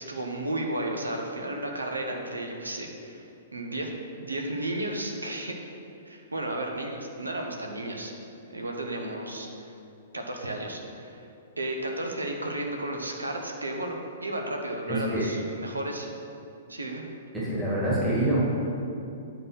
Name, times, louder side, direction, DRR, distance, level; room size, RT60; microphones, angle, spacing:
voice 1, 0.0-3.9 4.2-5.6 6.0-8.1 8.5-9.7 10.1-11.3 11.6-16.1 16.7-17.0, right 1 dB, 80° right, 2 dB, 1.0 m, -33 dB
voice 2, 14.9-15.3 17.3-18.5, right 1 dB, 5° right, -8 dB, 2.0 m, -26 dB
9.2 x 4.1 x 6.2 m, 2.7 s
figure-of-eight pair, 110°, 0 cm